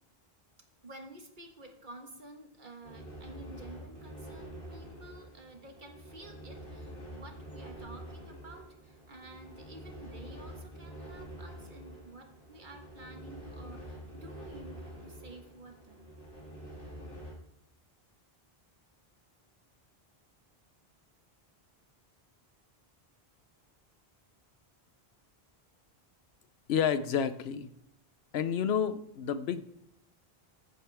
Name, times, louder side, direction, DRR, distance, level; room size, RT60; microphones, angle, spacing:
voice 1, 0.8-16.0, right 1 dB, 50° right, 4 dB, 1.5 m, -51 dB
sound 1, 2.8-17.3, right 1 dB, 60° left, 4.4 m, -47 dB
voice 2, 26.7-27.7 28.3-29.6, left 7 dB, 85° left, 13 dB, 0.9 m, -30 dB
14.5 x 8.0 x 3.4 m, 0.81 s
omnidirectional pair, 1.0 m